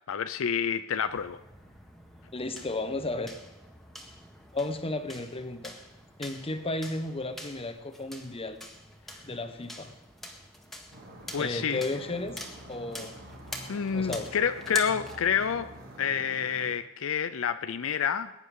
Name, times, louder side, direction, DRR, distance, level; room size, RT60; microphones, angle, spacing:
voice 1, 0.1-1.4 11.3-11.8 13.7-18.3, left 7 dB, 70° left, 12 dB, 0.5 m, -29 dB
sound 1, 1.1-15.8, equal, ahead, 1.7 m, -45 dB
voice 2, 2.3-3.3 4.5-5.8 6.2-8.6 9.2-9.9 11.4-12.4 12.7-13.2 13.9-14.3, left 2 dB, 30° left, 9 dB, 1.0 m, -33 dB
sound 2, 10.9-16.7, right 1 dB, 65° right, 3.7 m, -47 dB
21.0 x 9.9 x 5.4 m, 0.95 s
head